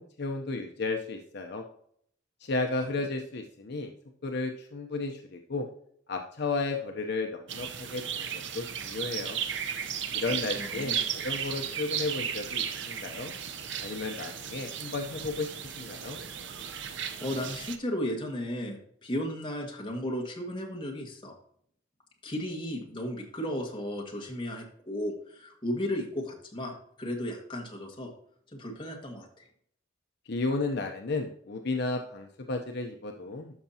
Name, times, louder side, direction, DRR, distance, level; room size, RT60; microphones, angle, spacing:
voice 1, 0.0-1.6 2.4-3.9 4.2-5.7 6.1-8.3 8.5-9.4 10.1-11.0 11.2-13.3 13.8-16.2 30.3-33.5, left 3 dB, 60° left, 3 dB, 0.7 m, -33 dB
sound 1, 7.5-17.8, right 8 dB, 65° right, 0.8 m, -35 dB
voice 2, 10.3-11.1 16.9-21.3 22.2-28.1 28.5-29.5, equal, 25° left, 0 dB, 1.8 m, -35 dB
12.5 x 5.8 x 2.8 m, 0.66 s
head